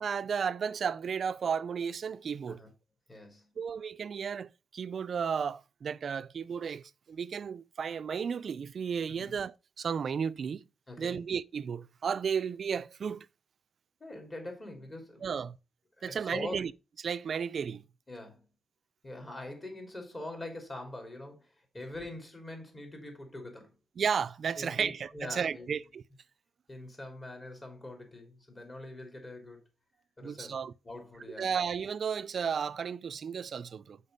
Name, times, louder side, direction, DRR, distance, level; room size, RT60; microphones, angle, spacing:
voice 1, 0.0-2.6 3.6-10.6 11.0-13.3 15.2-15.6 16.0-16.7 17.0-17.8 24.0-26.0 30.2-30.7 31.4-34.0, right 6 dB, 60° right, 0.4 m, -33 dB
voice 2, 3.1-3.5 9.1-9.3 10.9-11.2 14.0-15.4 16.0-16.7 18.1-18.4 19.0-23.7 24.6-25.8 26.7-29.6 30.2-30.6 30.8-31.5, left 1 dB, 30° left, 3.3 m, -43 dB
6.5 x 5.3 x 5.1 m
cardioid pair, 100°, 0 cm